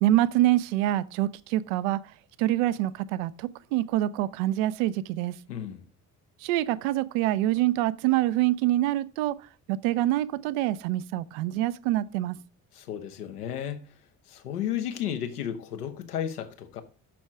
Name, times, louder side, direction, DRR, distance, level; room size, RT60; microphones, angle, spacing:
voice 1, 0.0-2.0 2.4-5.4 6.4-12.4, right 14 dB, 60° right, 0.6 m, -26 dB
voice 2, 5.5-5.8 12.7-13.8 14.3-16.8, left 10 dB, 75° left, 1.1 m, -33 dB
6.3 x 5.9 x 5.8 m
figure-of-eight pair, 50°, 46 cm